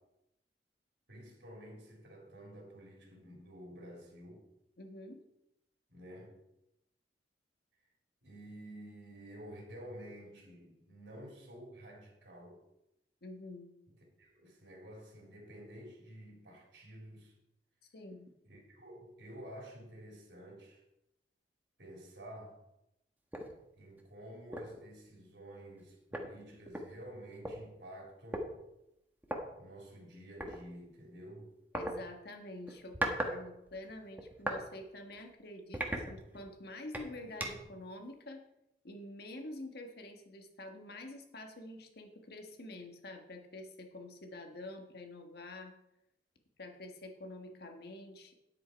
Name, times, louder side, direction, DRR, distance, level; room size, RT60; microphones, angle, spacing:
voice 1, 1.1-4.5 5.9-6.4 8.2-12.6 13.9-17.4 18.5-20.8 21.8-22.6 23.7-28.5 29.6-31.5, equal, 90° right, 3.6 m, -51 dB
voice 2, 4.8-5.2 13.2-13.7 17.9-18.3 31.7-38.4 38.8-45.7 46.6-48.3, left 1 dB, 65° left, 1.6 m, -47 dB
sound 1, 23.3-23.5 24.0-24.1 24.5-24.8 25.8-25.9 26.1-27.5 28.3-28.5 29.2-29.4 30.4-30.6 31.7-31.9 32.7-33.4 33.7-34.6 35.1-35.2 35.7-36.5 36.9-37.7, right 1 dB, 10° right, 1.3 m, -38 dB
10.0 x 7.8 x 4.6 m
head